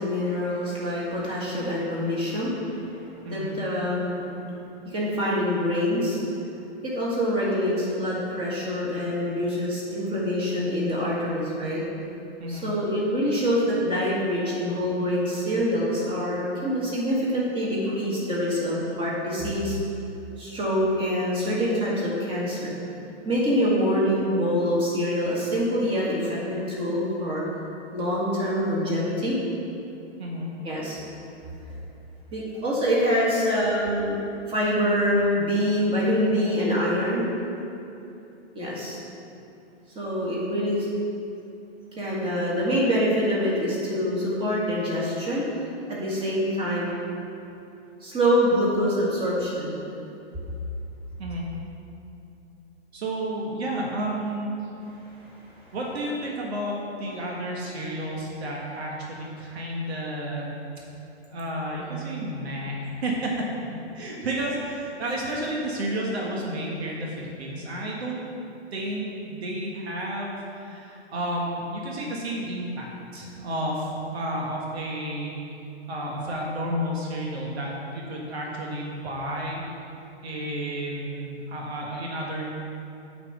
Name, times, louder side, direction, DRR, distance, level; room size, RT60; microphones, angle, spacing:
voice 1, 0.0-4.6 4.9-6.2 6.8-11.8 12.5-19.8 20.4-22.7 23.3-27.4 27.9-29.4 30.6-31.0 32.3-34.2 34.5-37.3 38.6-39.0 40.0-40.9 42.0-45.5 45.9-46.9 48.0-49.8 55.2-55.3, equal, 15° right, -6 dB, 1.8 m, -25 dB
voice 2, 30.2-30.5 51.2-51.4 52.9-54.5 55.7-60.5 61.3-63.5 63.9-68.2 68.7-72.9 73.1-75.3 75.9-79.6 80.2-82.5, right 1 dB, 65° right, -2 dB, 1.7 m, -31 dB
8.8 x 4.3 x 6.6 m, 2.8 s
hypercardioid pair, 145°, 34 cm